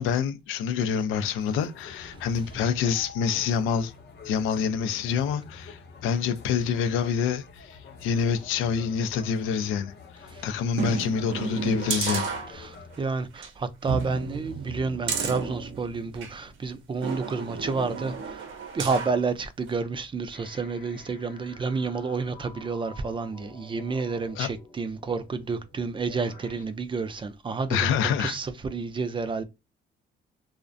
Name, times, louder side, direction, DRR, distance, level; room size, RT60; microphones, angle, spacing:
voice 1, 0.0-3.9 4.2-12.3 24.4-24.5 27.7-28.4, left 6 dB, 90° left, 0.4 m, -27 dB
sound 1, 1.4-13.1, left 4 dB, 60° left, 0.7 m, -47 dB
sound 2, 10.7-13.0 13.4-13.5 13.9-16.4 17.0-19.2 19.7-19.8, right 5 dB, 75° right, 0.6 m, -32 dB
voice 2, 12.5-18.5 18.7-27.9 28.2-29.4, right 4 dB, 25° right, 0.3 m, -30 dB
sound 3, 20.3-26.6, left 4 dB, 45° left, 0.9 m, -50 dB
2.4 x 2.1 x 2.5 m
cardioid pair, 90°, 20 cm